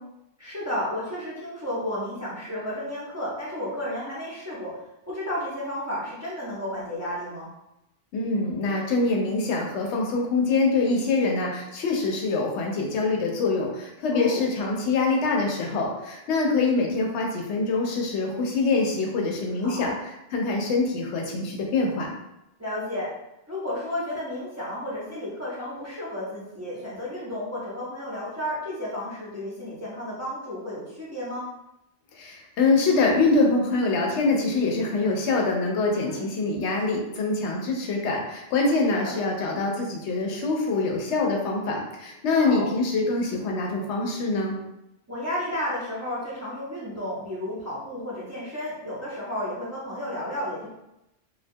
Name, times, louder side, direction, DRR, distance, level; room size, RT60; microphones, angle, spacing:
voice 1, 0.4-4.7 5.1-7.5 14.1-14.5 19.6-19.9 22.6-23.1 23.5-31.5 36.0-36.3 38.9-39.1 42.4-42.7 45.1-50.7, left 1 dB, 20° right, -9 dB, 0.5 m, -32 dB
voice 2, 8.1-19.9 20.3-22.1 32.1-44.6, left 3 dB, 85° left, 0 dB, 0.9 m, -24 dB
2.2 x 2.2 x 2.6 m, 0.89 s
omnidirectional pair, 1.1 m